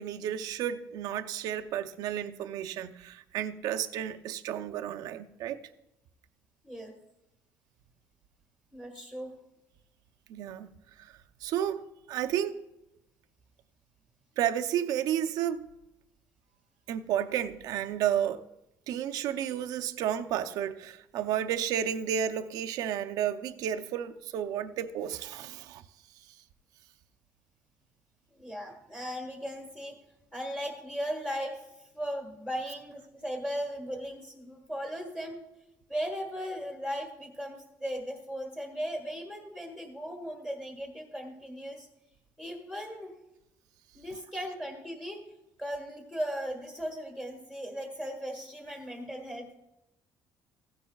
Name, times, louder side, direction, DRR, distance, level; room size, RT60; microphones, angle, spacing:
voice 1, 0.0-5.6 10.3-10.7 11.0-11.1 11.4-12.6 14.4-15.7 16.9-18.4 18.9-25.8, right 10 dB, 70° right, 0.6 m, -32 dB
voice 2, 8.7-9.3 28.3-29.9 30.3-35.5 35.9-41.9 42.4-43.1 43.9-45.2 45.6-49.5, equal, 10° left, 1.6 m, -37 dB
15.5 x 10.0 x 2.3 m
cardioid pair, 165°, 7 cm